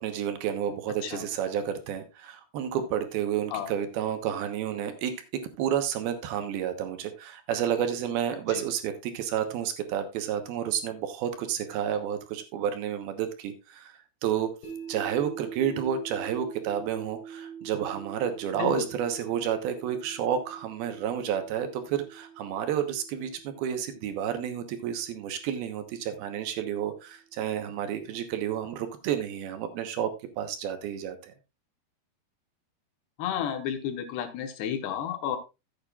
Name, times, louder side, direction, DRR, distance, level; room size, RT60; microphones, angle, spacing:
voice 1, 0.0-13.9 14.2-14.5 14.9-30.1 30.4-31.3, right 9 dB, 75° right, 7 dB, 2.9 m, -30 dB
sound 1, 14.6-26.7, right 7 dB, 60° left, 5.1 m, -45 dB
voice 2, 33.2-35.4, left 9 dB, 80° left, 6 dB, 3.3 m, -32 dB
14.0 x 8.7 x 2.4 m, 0.26 s
omnidirectional pair, 4.7 m